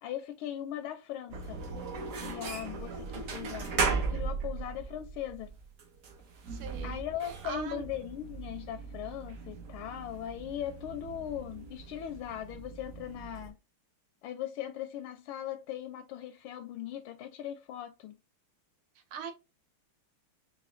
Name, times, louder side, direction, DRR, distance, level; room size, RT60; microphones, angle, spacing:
voice 1, 0.0-1.6 2.2-5.5 6.8-13.5 14.2-18.2, left 11 dB, 80° left, 1.4 m, -39 dB
sound 1, 1.3-13.5, right 4 dB, 60° right, 0.9 m, -38 dB
voice 2, 6.5-7.8 18.9-19.3, right 7 dB, 80° right, 1.7 m, -41 dB
4.9 x 2.5 x 2.5 m
omnidirectional pair, 2.3 m